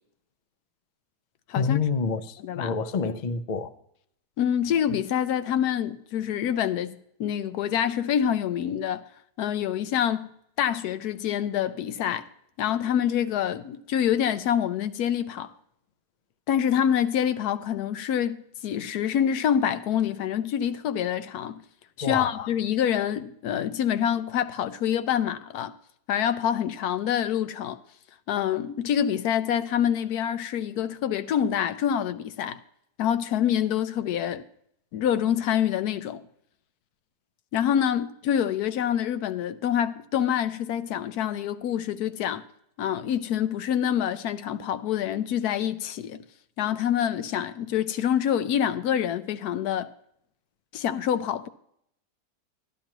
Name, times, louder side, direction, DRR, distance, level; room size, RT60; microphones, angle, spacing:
voice 1, 1.5-3.7 22.0-22.5, left 5 dB, 60° left, 0.4 m, -28 dB
voice 2, 2.4-2.7 4.4-6.9 7.2-9.0 9.4-10.3 10.6-12.3 12.6-15.5 16.5-18.4 18.6-21.6 22.0-25.7 26.1-27.8 28.3-32.6 33.0-34.4 34.9-36.2 37.5-42.4 42.8-46.2 46.6-49.9 50.7-51.5, left 9 dB, 85° left, 1.2 m, -26 dB
13.0 x 11.0 x 2.9 m
omnidirectional pair, 1.6 m